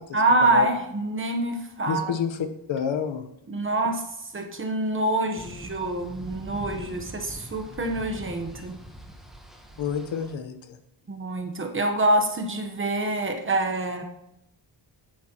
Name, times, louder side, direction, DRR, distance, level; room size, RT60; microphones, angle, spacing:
voice 1, 0.1-2.1 3.5-8.8 11.1-14.0, right 2 dB, 25° right, 4 dB, 1.1 m, -26 dB
voice 2, 1.9-2.4 2.7-3.2 9.8-10.8, left 7 dB, 75° left, 8 dB, 1.1 m, -29 dB
sound 1, 5.4-10.3, right 1 dB, ahead, 1.1 m, -42 dB
10.0 x 9.5 x 3.0 m, 0.82 s
wide cardioid pair, 170°, 46 cm